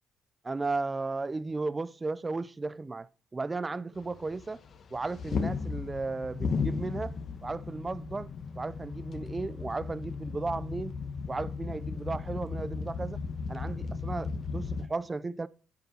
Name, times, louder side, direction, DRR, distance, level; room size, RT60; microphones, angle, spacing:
voice 1, 0.4-4.6 4.9-7.2 7.4-8.3 8.6-10.9 11.3-13.2 13.5-15.5, right 3 dB, 25° right, 0.6 m, -35 dB
sound 1, 4.0-14.9, left 5 dB, 50° left, 1.1 m, -36 dB
10.5 x 5.5 x 6.2 m
cardioid pair, 90°, 0 cm